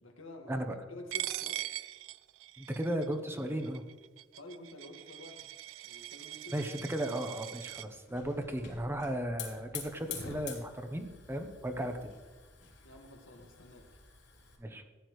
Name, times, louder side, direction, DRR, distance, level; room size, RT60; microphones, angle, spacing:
voice 1, 0.0-0.6 0.9-1.6 4.4-5.5 5.8-6.5 12.8-13.9, left 1 dB, 90° left, 2 dB, 1.7 m, -49 dB
Coin (dropping), 1.1-7.9, right 14 dB, 75° right, 0.3 m, -42 dB
voice 2, 2.6-3.8 6.5-12.1 14.6-14.8, right 1 dB, 10° right, 6 dB, 0.8 m, -35 dB
Hiss / Fire, 7.7-14.6, left 6 dB, 60° left, 3.3 m, -47 dB
15.0 x 9.9 x 3.2 m, 1.3 s
head